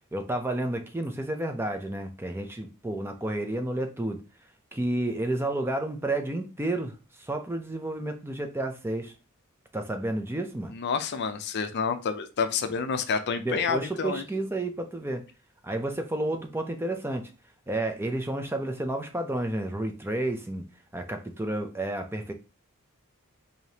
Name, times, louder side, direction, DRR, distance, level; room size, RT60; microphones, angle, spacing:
voice 1, 0.1-4.2 4.7-9.1 9.7-10.7 13.4-15.3 15.6-17.3 17.7-20.7 20.9-22.3, right 1 dB, 10° right, 0.5 m, -31 dB
voice 2, 10.7-14.2, left 5 dB, 50° left, 0.5 m, -29 dB
4.8 x 2.8 x 2.8 m
head